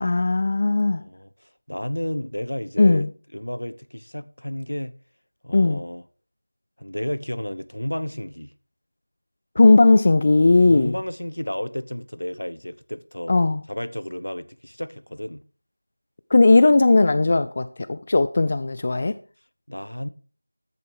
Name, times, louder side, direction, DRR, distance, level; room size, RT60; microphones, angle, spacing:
voice 1, 0.0-1.0 2.8-3.1 5.5-5.8 9.6-10.9 13.3-13.6 16.3-19.2, left 3 dB, 25° left, 0.4 m, -17 dB
voice 2, 1.0-3.1 3.3-5.0 5.4-6.0 6.8-8.5 10.7-13.3 13.7-15.4 19.7-20.1, left 1 dB, 85° left, 1.1 m, -32 dB
13.5 x 7.0 x 4.9 m
figure-of-eight pair, 175°, 0 cm